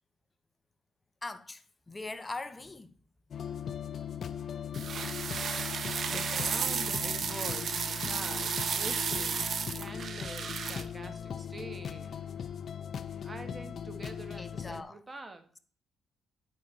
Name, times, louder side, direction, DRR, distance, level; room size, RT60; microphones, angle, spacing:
voice 1, 1.2-3.0 14.4-15.0, left 2 dB, 20° left, 0.7 m, -41 dB
sound 1, 3.3-14.8, left 8 dB, 55° left, 0.4 m, -39 dB
sound 2, 4.7-10.8, right 6 dB, 55° right, 0.6 m, -33 dB
voice 2, 6.1-12.2 13.2-15.4, right 2 dB, 25° right, 1.3 m, -45 dB
9.0 x 3.9 x 4.1 m
cardioid pair, 90°, 0 cm